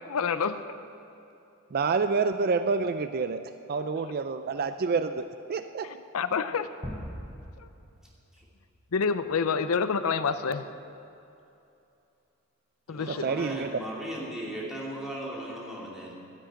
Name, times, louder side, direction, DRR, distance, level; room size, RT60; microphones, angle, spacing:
voice 1, 0.0-0.8 5.8-6.7 7.6-7.7 8.9-10.7 12.9-13.3, left 5 dB, 85° left, 12 dB, 0.6 m, -28 dB
voice 2, 1.7-3.4 3.7-5.9 13.1-13.7, right 4 dB, 45° right, 10 dB, 0.4 m, -28 dB
sound 1, 6.8-9.8, equal, 25° right, 2.6 m, -43 dB
voice 3, 12.9-16.1, equal, ahead, -5 dB, 2.8 m, -37 dB
11.5 x 10.5 x 8.8 m, 2.7 s
head